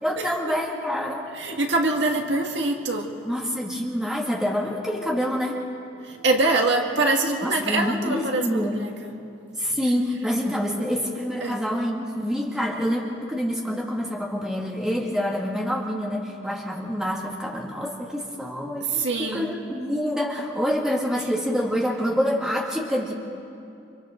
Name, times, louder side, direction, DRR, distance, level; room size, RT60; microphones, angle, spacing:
voice 1, 0.0-1.3 3.2-5.6 7.4-8.8 9.6-23.1, equal, 5° right, -2 dB, 2.1 m, -27 dB
voice 2, 1.4-3.1 6.0-9.1 11.4-11.6 18.9-19.5, right 2 dB, 60° right, 1 dB, 2.0 m, -24 dB
29.5 x 26.0 x 3.8 m, 2.6 s
head